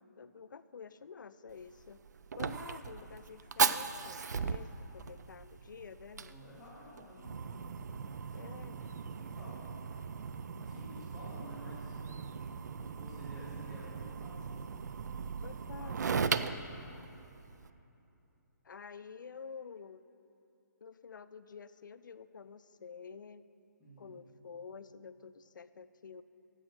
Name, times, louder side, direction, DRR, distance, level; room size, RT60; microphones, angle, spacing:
voice 1, 0.0-2.0 2.4-6.4 8.3-8.8 15.4-16.6 18.6-20.0 20.8-23.4 24.0-26.2, left 6 dB, 90° left, 14 dB, 0.4 m, -49 dB
Fire, 1.5-17.7, right 6 dB, 65° right, 0.4 m, -38 dB
voice 2, 6.3-7.4 8.1-9.6 10.6-12.0 12.5-14.6 15.5-16.6 23.8-24.2, left 1 dB, ahead, -13 dB, 1.8 m, -52 dB
9.7 x 7.4 x 6.0 m, 2.9 s
hypercardioid pair, 170°, 10 cm